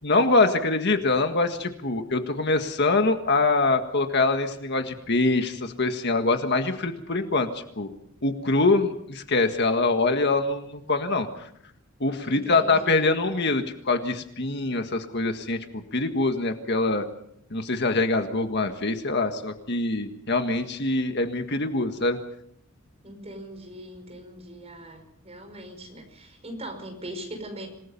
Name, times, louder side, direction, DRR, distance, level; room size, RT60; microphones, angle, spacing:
voice 1, 0.0-7.9 8.2-11.5 12.0-17.0 17.5-22.2, left 3 dB, 55° left, 6 dB, 1.7 m, -24 dB
voice 2, 12.2-13.1 23.0-27.7, right 1 dB, 30° right, 5 dB, 5.5 m, -40 dB
27.0 x 19.0 x 5.5 m, 0.72 s
head